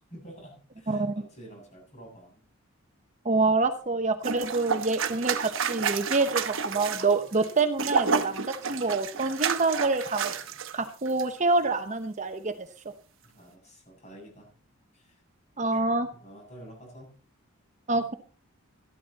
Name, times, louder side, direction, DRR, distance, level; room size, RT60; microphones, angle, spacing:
voice 1, 0.1-2.4 13.2-14.5 14.9-15.2 16.2-17.1, right 1 dB, 35° left, 0 dB, 7.4 m, -49 dB
voice 2, 3.2-10.3 10.7-12.5 15.6-16.1 17.9-18.1, right 3 dB, 35° right, 8 dB, 0.9 m, -26 dB
sound 1, 4.2-10.7 11.1-11.2, right 6 dB, 65° right, 1.1 m, -30 dB
13.5 x 12.5 x 4.1 m, 0.39 s
head